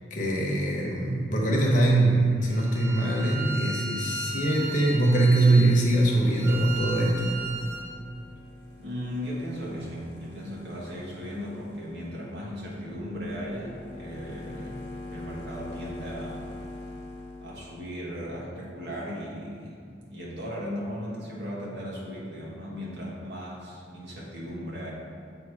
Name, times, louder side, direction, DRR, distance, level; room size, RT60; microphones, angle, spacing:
voice 1, 0.1-7.4, right 2 dB, 45° left, -2 dB, 1.0 m, -22 dB
Bowed string instrument, 2.5-7.9, right 3 dB, 15° right, 0.4 m, -36 dB
sound 1, 6.4-17.7, left 2 dB, 70° left, 0.8 m, -44 dB
voice 2, 8.8-14.8 15.1-16.4 17.4-24.9, equal, 75° right, -5 dB, 1.5 m, -37 dB
7.1 x 3.0 x 4.8 m, 2.3 s
head